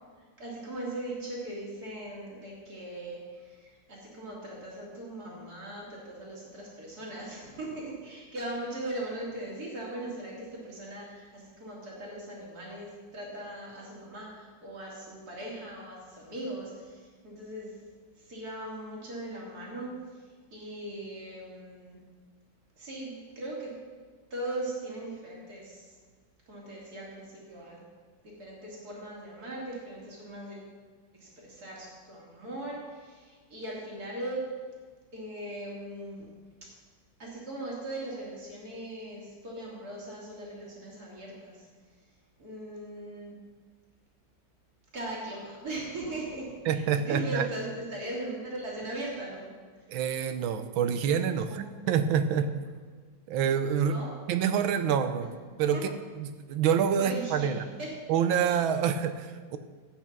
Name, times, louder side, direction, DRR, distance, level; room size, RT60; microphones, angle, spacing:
voice 1, 0.4-17.7 18.2-20.2 20.5-22.0 22.8-23.7 24.3-25.9 26.5-27.8 28.2-30.6 31.1-34.4 35.1-36.3 37.2-41.7 42.4-43.4 44.9-49.5 53.9-54.1 55.7-55.8 57.0-57.9, right 1 dB, 50° right, -4 dB, 3.5 m, -39 dB
voice 2, 46.7-47.5 49.9-52.5 53.3-55.9 56.2-57.6 58.1-59.6, right 7 dB, 85° right, 10 dB, 1.6 m, -27 dB
13.5 x 8.7 x 6.0 m, 1.5 s
omnidirectional pair, 2.1 m